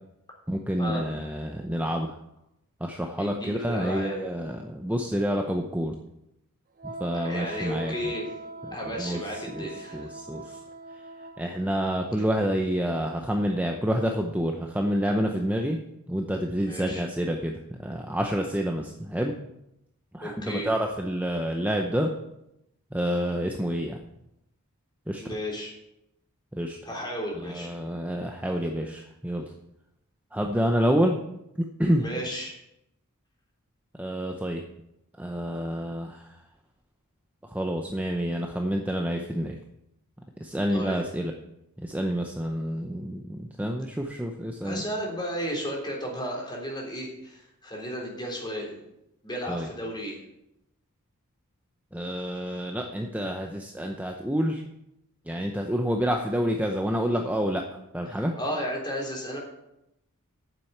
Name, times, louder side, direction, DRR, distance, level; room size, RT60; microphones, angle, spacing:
voice 1, 0.5-2.2 2.8-5.9 6.8-8.1 8.7-10.6 11.4-15.8 16.1-17.5 17.8-19.3 20.1-22.1 22.9-24.0 25.1-25.2 26.5-26.8 27.4-29.5 30.3-31.2 31.8-32.1 34.0-34.6 35.2-36.3 37.5-39.6 40.4-41.3 41.8-44.8 49.5-49.7 51.9-54.6 55.3-57.6 57.9-58.3, equal, 5° right, 2 dB, 0.7 m, -28 dB
voice 2, 3.2-4.2 7.2-8.4 8.7-10.1 16.7-17.0 20.2-20.7 25.2-25.7 26.8-27.7 32.0-32.5 40.7-41.0 44.6-48.8 49.2-50.2 58.1-59.4, equal, 20° left, -1 dB, 3.4 m, -33 dB
Wind instrument woodwind instrument, 6.8-11.5, right 2 dB, 40° right, 1.0 m, -41 dB
9.0 x 7.5 x 8.0 m, 0.84 s
head